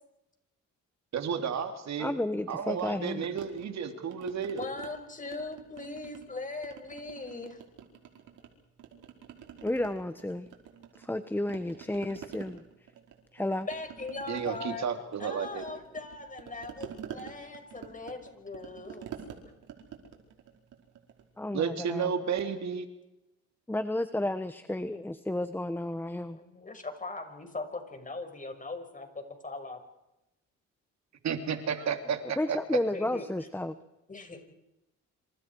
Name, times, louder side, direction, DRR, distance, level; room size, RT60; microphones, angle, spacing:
voice 1, 1.1-2.1 2.5-4.6 14.3-15.6 21.5-22.9 31.2-32.8, right 7 dB, 65° right, 6 dB, 3.2 m, -32 dB
voice 2, 2.0-3.2 9.6-10.5 11.0-12.6 13.3-13.7 21.4-22.1 23.7-26.4 32.4-33.8, left 1 dB, 5° left, 11 dB, 1.2 m, -32 dB
sound 1, 3.2-4.9 5.2-6.3 6.6-8.5 8.8-11.2 11.5-21.3, right 9 dB, 80° right, 5.0 m, -47 dB
voice 3, 4.6-7.6 13.7-14.9 15.2-19.2 26.3-29.8 32.9-33.2 34.1-34.4, left 3 dB, 25° left, 6 dB, 5.7 m, -40 dB
27.5 x 27.0 x 4.8 m, 0.93 s
cardioid pair, 90°, 30 cm